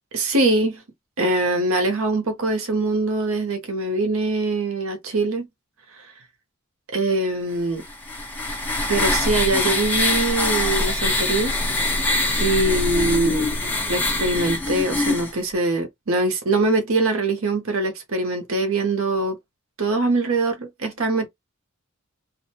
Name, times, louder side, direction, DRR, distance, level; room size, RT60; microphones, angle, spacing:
voice 1, 0.1-0.8 1.2-5.5 6.9-7.8 8.9-11.6 12.4-13.5 13.9-19.4 19.8-21.3, right 2 dB, 70° right, 0.8 m, -23 dB
sound 1, 7.8-15.3, left 2 dB, 10° left, 0.8 m, -23 dB
2.5 x 2.1 x 2.8 m
head